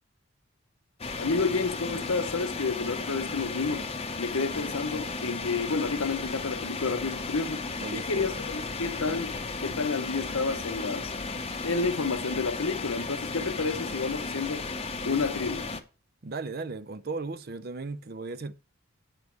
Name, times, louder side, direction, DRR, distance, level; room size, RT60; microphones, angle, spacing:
sound 1, 1.0-15.8, left 3 dB, 25° left, 0.7 m, -35 dB
voice 1, 1.2-3.9 4.2-7.7 7.9-11.1 11.6-14.7 15.0-15.7, left 4 dB, 80° left, 1.0 m, -30 dB
voice 2, 7.8-8.4 8.7-8.8 16.2-18.5, right 3 dB, 45° right, 0.5 m, -36 dB
8.1 x 6.8 x 4.7 m
head